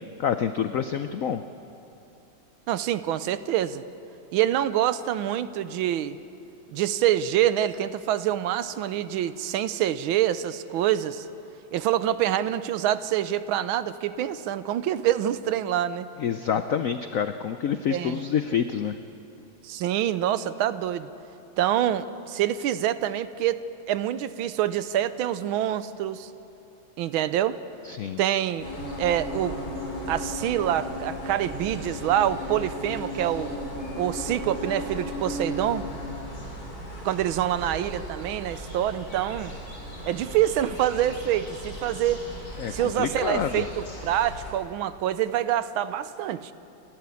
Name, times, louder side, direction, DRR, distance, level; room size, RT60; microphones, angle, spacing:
voice 1, 0.2-1.4 16.2-19.0 27.8-28.2 42.6-43.7, left 8 dB, 85° left, 9 dB, 0.7 m, -27 dB
voice 2, 2.7-3.8 4.3-6.2 6.7-11.3 11.7-16.1 17.9-18.2 19.6-21.1 21.6-23.6 23.9-26.3 27.0-27.6 28.2-28.7 29.0-29.6 30.1-33.5 34.0-35.9 37.0-39.5 40.0-42.2 42.7-46.5, right 11 dB, 85° right, 14 dB, 1.5 m, -26 dB
sound 1, 28.6-44.5, equal, 45° left, 5.4 m, -36 dB
29.5 x 12.5 x 8.4 m, 2.8 s
omnidirectional pair, 2.2 m